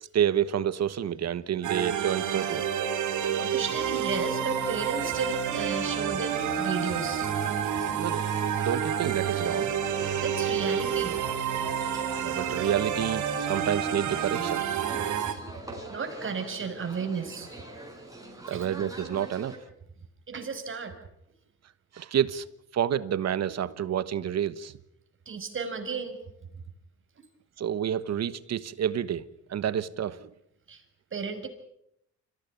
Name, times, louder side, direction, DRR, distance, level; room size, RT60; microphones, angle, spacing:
voice 1, 0.1-2.7 8.0-8.2 8.6-9.7 12.2-14.7 18.5-19.6 21.9-22.4 22.7-24.8 27.6-29.2 29.5-30.3, right 9 dB, 60° right, 1.2 m, -29 dB
sound 1, 1.6-15.3, right 8 dB, 75° right, 3.4 m, -29 dB
voice 2, 3.4-7.3 10.2-11.2 15.0-15.2 15.9-17.5 18.5-18.7 20.3-21.0 25.3-26.2 30.7-30.8 31.1-31.5, right 5 dB, 40° right, 5.8 m, -33 dB
sound 2, 4.1-19.6, right 1 dB, 10° right, 6.6 m, -45 dB
25.5 x 16.5 x 9.7 m
cardioid pair, 90°, 30 cm